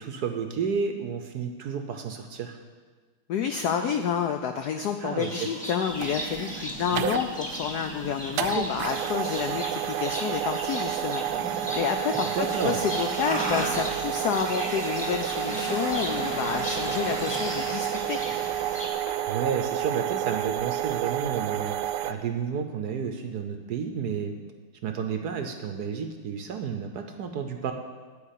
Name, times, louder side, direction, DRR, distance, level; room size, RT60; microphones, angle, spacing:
voice 1, 0.0-2.6 5.0-5.5 6.9-7.1 8.5-8.7 12.3-12.8 19.3-21.8 22.1-24.3 24.8-27.7, right 6 dB, 65° right, 5 dB, 1.0 m, -31 dB
voice 2, 3.3-11.2 11.7-18.2, left 7 dB, 80° left, 7 dB, 0.9 m, -29 dB
Livestock farm animals working animals, 5.2-18.9, equal, 5° left, 1.4 m, -37 dB
sound 1, 5.9-22.1, right 11 dB, 85° right, 1.4 m, -30 dB
sound 2, 11.2-19.5 19.9-20.0, left 1 dB, 40° left, 1.7 m, -40 dB
12.0 x 5.0 x 8.3 m, 1.5 s
omnidirectional pair, 2.3 m